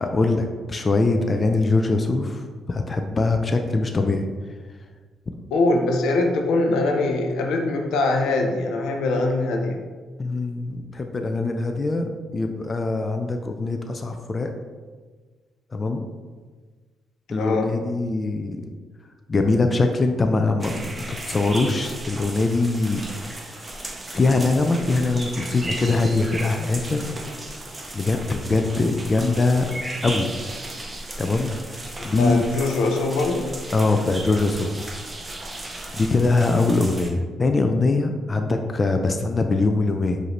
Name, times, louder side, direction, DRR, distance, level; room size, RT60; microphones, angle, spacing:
voice 1, 0.0-4.3 10.2-14.5 15.7-16.1 17.3-18.6 19.3-23.0 23.3-23.6 24.1-27.2 27.9-29.7 30.0-30.3 31.2-32.4 33.7-34.8 35.9-40.2, left 3 dB, 30° left, 5 dB, 0.3 m, -22 dB
voice 2, 5.5-9.8 17.4-17.7 32.2-33.5, left 2 dB, 85° left, 2 dB, 0.5 m, -22 dB
sound 1, 20.6-37.1, right 1 dB, 20° right, 0.6 m, -35 dB
4.9 x 2.6 x 3.0 m, 1.4 s
cardioid pair, 90°, 0 cm